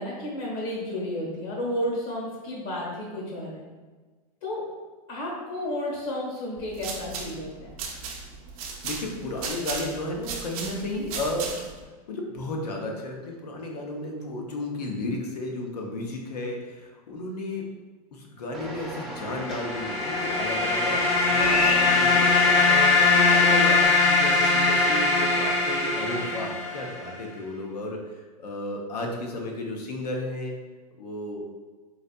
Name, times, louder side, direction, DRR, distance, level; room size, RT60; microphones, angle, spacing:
voice 1, 0.0-3.6 4.4-4.6 5.1-7.7 26.0-26.4, left 1 dB, 60° left, -3 dB, 1.3 m, -32 dB
sound 1, 6.6-11.8, right 5 dB, 60° right, 0.6 m, -36 dB
voice 2, 8.8-11.5 12.1-17.7 18.1-30.5 31.0-31.4, left 1 dB, 85° left, 1 dB, 0.7 m, -33 dB
sound 2, 18.5-23.8, equal, ahead, 0.6 m, -33 dB
sound 3, 19.3-27.0, left 3 dB, 45° left, 1.0 m, -21 dB
3.9 x 2.7 x 2.2 m, 1.4 s
hypercardioid pair, 130°, 20 cm